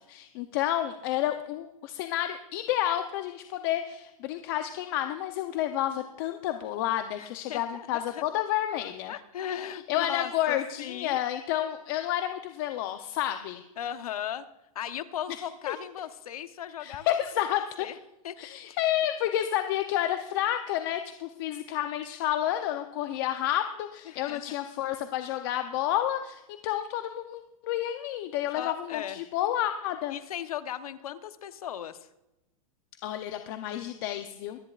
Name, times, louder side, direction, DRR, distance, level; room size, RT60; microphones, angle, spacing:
voice 1, 0.0-9.1 9.9-13.6 15.3-15.4 15.7-15.8 16.8-17.9 18.4-30.1 33.0-34.6, left 12 dB, 40° left, 7 dB, 0.7 m, -30 dB
voice 2, 7.2-8.2 9.1-11.2 13.8-14.5 14.7-17.2 17.5-18.0 18.2-18.8 24.1-24.4 28.5-29.2 30.1-32.1, left 10 dB, 85° left, 11 dB, 1.1 m, -37 dB
24.5 x 10.0 x 2.5 m, 0.91 s
supercardioid pair, 160°, 18 cm